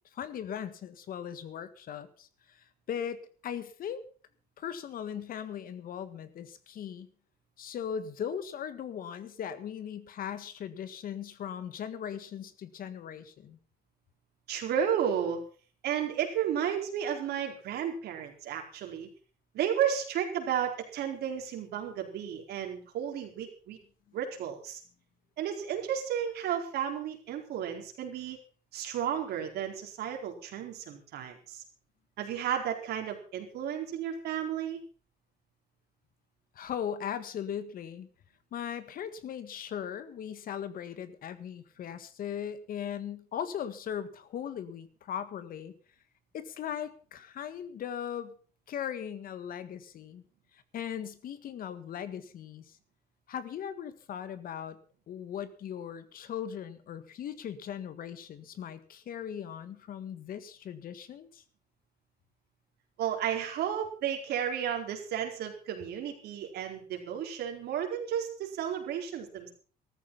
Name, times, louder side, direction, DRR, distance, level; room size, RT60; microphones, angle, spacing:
voice 1, 0.1-4.0 4.6-7.1 7.6-13.6 36.5-38.1 38.5-45.7 46.3-48.3 48.7-50.2 50.5-52.8 53.3-54.8 55.1-61.4, left 9 dB, 60° left, 13 dB, 1.7 m, -38 dB
voice 2, 14.5-15.4 15.8-19.1 19.5-23.8 24.1-24.8 25.4-28.4 28.7-31.6 32.2-34.8 63.0-69.5, right 9 dB, 75° right, 3 dB, 4.4 m, -33 dB
14.5 x 13.5 x 5.6 m, 0.40 s
cardioid pair, 110°, 17 cm